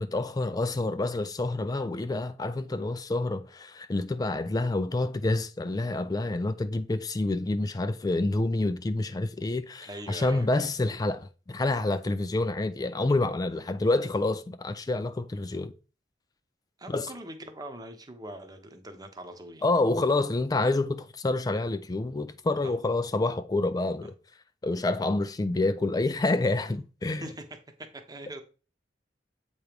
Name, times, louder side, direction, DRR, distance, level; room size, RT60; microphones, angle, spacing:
voice 1, 0.0-15.7 16.9-17.1 19.6-24.1 24.6-27.2, left 2 dB, 20° left, 0.4 m, -28 dB
voice 2, 9.8-10.5 13.5-13.6 16.8-19.7 22.6-22.7 26.6-26.8 27.1-28.4, right 1 dB, 20° right, 0.9 m, -42 dB
7.9 x 3.0 x 5.1 m
head